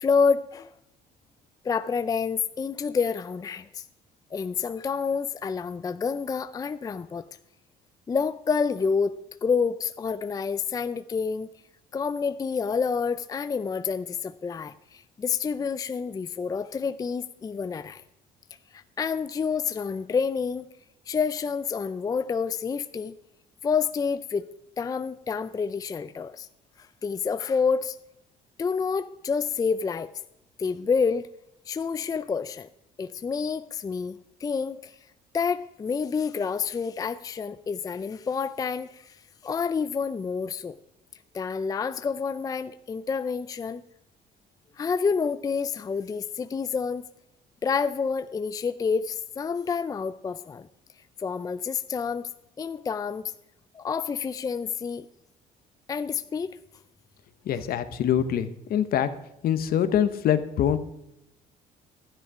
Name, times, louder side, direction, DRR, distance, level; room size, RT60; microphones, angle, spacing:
voice 1, 0.0-0.7 1.6-3.8 4.3-7.3 8.1-9.1 9.4-11.5 11.9-18.0 18.7-20.7 21.1-23.1 23.6-24.4 24.8-26.5 26.8-28.0 28.6-30.1 30.6-31.3 31.7-32.7 33.0-35.0 35.3-40.8 41.3-43.8 44.8-47.0 47.6-50.7 51.2-52.3 52.6-53.2 53.7-55.1 55.9-56.6, left 5 dB, 20° left, 12 dB, 0.4 m, -28 dB
voice 2, 57.5-59.1 59.4-60.8, left 9 dB, 60° left, 11 dB, 1.0 m, -24 dB
12.5 x 10.0 x 4.9 m, 0.84 s
cardioid pair, 110°, 17 cm